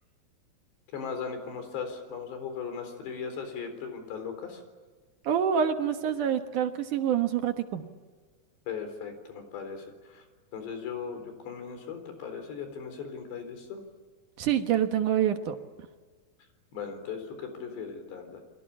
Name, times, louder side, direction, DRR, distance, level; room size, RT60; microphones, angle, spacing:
voice 1, 0.9-4.6 8.7-10.2 10.5-13.8 16.7-18.4, left 6 dB, 80° left, 7 dB, 6.2 m, -38 dB
voice 2, 5.2-7.9 14.4-15.6, right 9 dB, 60° right, 7 dB, 2.3 m, -26 dB
29.5 x 23.0 x 8.5 m, 1.4 s
omnidirectional pair, 4.9 m